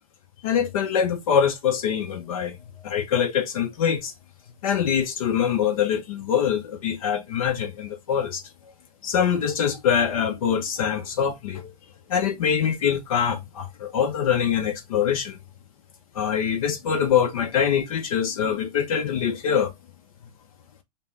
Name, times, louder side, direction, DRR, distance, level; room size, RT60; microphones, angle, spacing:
voice 1, 0.4-2.6 2.8-4.1 4.6-8.4 9.0-11.7 12.1-15.4 16.1-19.7, left 8 dB, 60° left, 0.8 m, -24 dB
5.3 x 2.2 x 3.8 m
hypercardioid pair, 125°, 21 cm